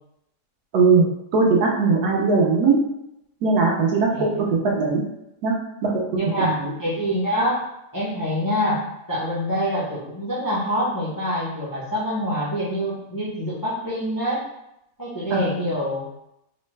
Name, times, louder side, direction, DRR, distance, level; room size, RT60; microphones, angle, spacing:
voice 1, 0.7-1.1 1.3-2.8 3.4-5.0 5.4-5.5 5.8-6.0 6.4-6.7 15.3-15.7, right 4 dB, 75° right, -1 dB, 1.1 m, -19 dB
voice 2, 6.2-7.6 7.9-14.4 15.0-16.1, equal, 20° left, -8 dB, 0.5 m, -25 dB
3.2 x 2.1 x 3.1 m, 0.83 s
omnidirectional pair, 1.7 m